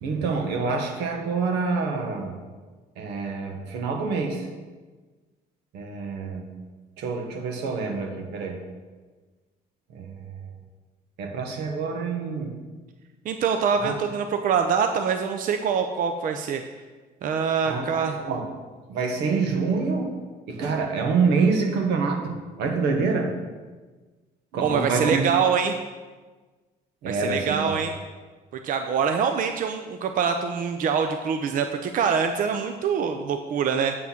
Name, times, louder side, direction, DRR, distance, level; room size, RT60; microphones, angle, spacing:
voice 1, 0.0-2.3 3.0-4.5 5.7-6.5 7.0-8.6 9.9-10.3 11.2-12.6 13.8-13.9 17.6-18.5 18.9-20.2 20.5-22.3 22.6-23.4 24.5-25.2 27.0-27.7, right 4 dB, 90° right, 3 dB, 1.4 m, -26 dB
voice 2, 13.2-16.6 17.2-18.2 24.6-25.8 27.1-27.9 28.6-34.0, right 6 dB, 55° right, 6 dB, 0.6 m, -24 dB
7.7 x 5.9 x 5.9 m, 1.3 s
cardioid pair, 110°, 17 cm